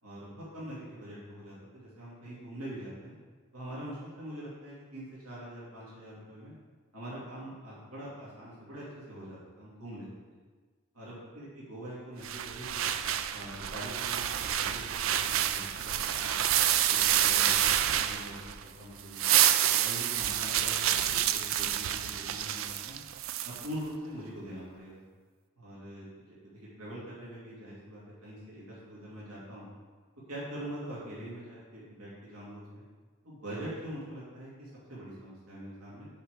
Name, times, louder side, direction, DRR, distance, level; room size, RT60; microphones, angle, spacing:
voice 1, 0.0-3.1 3.5-6.5 6.9-10.1 10.9-12.9 13.3-16.3 16.8-19.3 19.8-23.0 23.4-25.0 25.6-29.7 30.3-32.8 33.2-36.0, right 1 dB, 85° right, -7 dB, 2.5 m, -43 dB
sound 1, 12.2-18.6 19.0-23.7, right 11 dB, 60° right, 0.4 m, -28 dB
5.8 x 5.5 x 6.5 m, 1.5 s
head